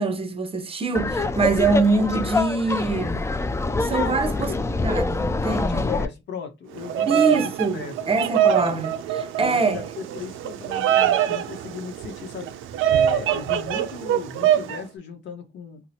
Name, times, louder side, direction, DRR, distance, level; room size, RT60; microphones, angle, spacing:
voice 1, 0.0-3.2 3.8-4.5 4.8-5.9 7.1-9.8, right 3 dB, 30° right, 0.7 m, -24 dB
Laughter, 0.9-6.0, left 3 dB, 15° left, 0.3 m, -25 dB
voice 2, 3.8-4.6 5.5-7.9 9.4-12.5 12.9-15.8, left 5 dB, 65° left, 0.8 m, -36 dB
Bird vocalization bird call bird song, 6.8-14.8, right 10 dB, 85° right, 0.4 m, -23 dB
2.8 x 2.0 x 4.0 m
cardioid pair, 90°, 20 cm